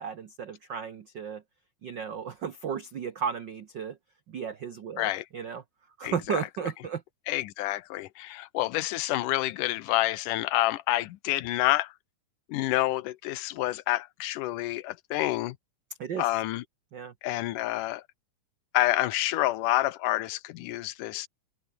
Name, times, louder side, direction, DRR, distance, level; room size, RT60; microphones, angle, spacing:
voice 1, 0.0-1.4 1.8-4.0 4.3-5.6 6.0-7.0 16.0-16.3 16.9-17.1, right 7 dB, 85° right, 1.0 m, -34 dB
voice 2, 6.0-6.5 7.3-11.9 12.5-15.6 16.2-16.6 17.2-18.0 18.7-21.3, left 16 dB, 80° left, 2.4 m, -28 dB
open air
omnidirectional pair, 3.7 m